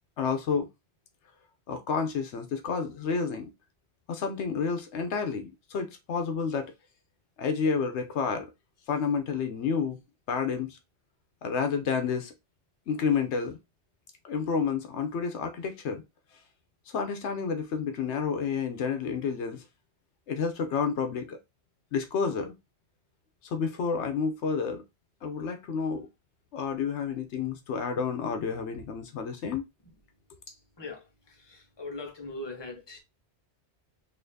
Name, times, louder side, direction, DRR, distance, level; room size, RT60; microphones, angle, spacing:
voice 1, 0.2-0.7 1.7-3.5 4.1-6.7 7.4-8.5 8.9-10.0 10.3-10.8 11.4-12.3 12.9-13.6 14.2-16.0 16.9-19.6 20.3-21.4 21.9-22.5 23.5-24.8 25.2-26.1 26.5-29.7, left 5 dB, 80° left, 1.0 m, -30 dB
voice 2, 30.5-33.0, left 2 dB, 25° left, 1.1 m, -41 dB
4.1 x 2.8 x 2.7 m
omnidirectional pair, 1.1 m